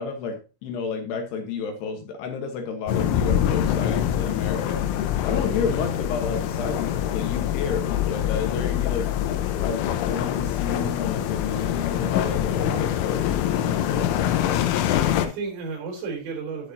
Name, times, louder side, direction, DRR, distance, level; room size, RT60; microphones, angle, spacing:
voice 1, 0.0-4.8 5.2-9.1 9.6-14.1, left 5 dB, 70° left, 4 dB, 3.1 m, -31 dB
sound 1, 2.9-15.3, left 11 dB, 90° left, 3.5 m, -24 dB
voice 2, 14.6-16.7, right 4 dB, 70° right, 0 dB, 6.0 m, -35 dB
12.0 x 8.7 x 2.8 m, 0.31 s
omnidirectional pair, 5.5 m